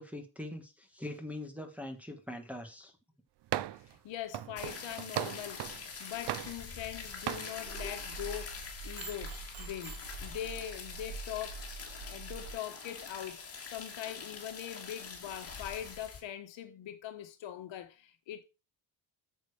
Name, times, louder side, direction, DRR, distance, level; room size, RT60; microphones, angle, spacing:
voice 1, 0.0-2.9 7.8-7.9, left 1 dB, 5° right, 1.2 m, -42 dB
sound 1, 3.5-3.9 4.3-5.8 6.3-7.0 7.3-7.5, right 14 dB, 60° right, 0.6 m, -37 dB
voice 2, 3.9-18.4, left 11 dB, 65° left, 1.4 m, -42 dB
sound 2, 4.6-16.2, left 5 dB, 30° left, 2.6 m, -45 dB
sound 3, 7.7-12.5, right 4 dB, 75° right, 2.6 m, -45 dB
9.1 x 6.9 x 4.9 m
cardioid pair, 170°, 49 cm